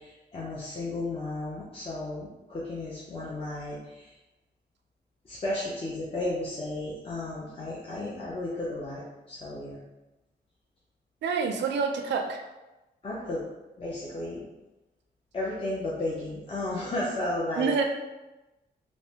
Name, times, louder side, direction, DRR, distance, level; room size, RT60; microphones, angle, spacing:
voice 1, 0.0-4.1 5.2-9.8 13.0-13.5 13.8-14.5 15.3-17.7, left 2 dB, 30° left, -6 dB, 0.5 m, -33 dB
voice 2, 11.2-12.4 17.6-17.9, right 5 dB, 85° right, 4 dB, 0.4 m, -27 dB
3.2 x 2.0 x 2.7 m, 1.0 s
cardioid pair, 110°, 18 cm